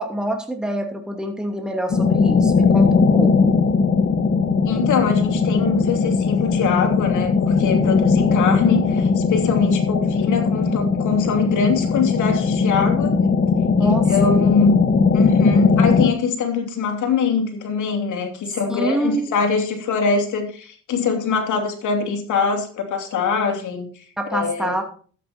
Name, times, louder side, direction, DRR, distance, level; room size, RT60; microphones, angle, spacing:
voice 1, 0.0-3.5 13.8-14.3 18.7-19.3 24.2-24.8, right 1 dB, ahead, 3 dB, 2.5 m, -26 dB
sound 1, 1.9-16.1, left 5 dB, 40° left, 1.4 m, -18 dB
voice 2, 4.7-13.1 13.8-14.8 15.1-24.0 24.3-24.8, left 5 dB, 80° left, 4 dB, 2.8 m, -23 dB
13.5 x 8.5 x 4.3 m, 0.43 s
cardioid pair, 90°, 30 cm